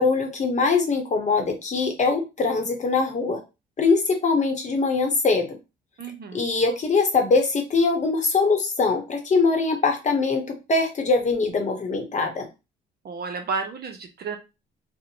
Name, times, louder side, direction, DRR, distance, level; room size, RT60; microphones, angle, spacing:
voice 1, 0.0-3.4 3.8-5.6 6.3-12.5, left 4 dB, 35° left, 3 dB, 0.8 m, -22 dB
voice 2, 6.0-6.5 13.0-14.4, right 5 dB, 55° right, 6 dB, 0.6 m, -32 dB
2.5 x 2.1 x 2.9 m, 0.27 s
cardioid pair, 90°, 20 cm